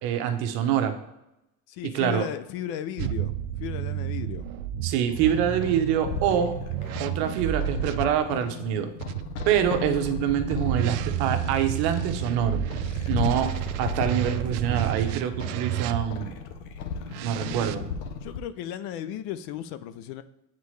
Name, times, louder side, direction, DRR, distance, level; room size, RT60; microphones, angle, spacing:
voice 1, 0.0-0.9 1.9-2.2 4.8-6.5 7.0-8.9 9.4-12.6 13.1-13.5 13.8-16.3 17.2-17.8, right 9 dB, 60° right, 7 dB, 0.9 m, -25 dB
voice 2, 1.7-4.5 18.2-20.2, left 10 dB, 55° left, 13 dB, 0.5 m, -35 dB
sound 1, 3.0-8.1 9.0-16.4 17.1-17.8, right 12 dB, 75° right, 0.5 m, -31 dB
sound 2, 5.1-18.4, left 7 dB, 75° left, 0.9 m, -36 dB
8.2 x 4.2 x 3.2 m, 0.88 s
supercardioid pair, 135°, 44 cm